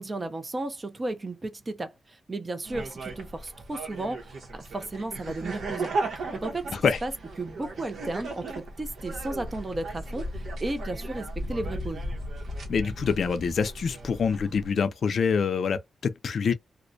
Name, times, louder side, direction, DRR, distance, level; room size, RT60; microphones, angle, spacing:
voice 1, 0.0-6.8 7.0-7.1 7.4-12.0, right 2 dB, 30° right, 0.5 m, -34 dB
sound 1, 2.6-14.7, right 2 dB, 75° right, 0.9 m, -36 dB
voice 2, 12.7-16.5, left 6 dB, 65° left, 0.4 m, -26 dB
2.4 x 2.1 x 2.5 m
cardioid pair, 90°, 0 cm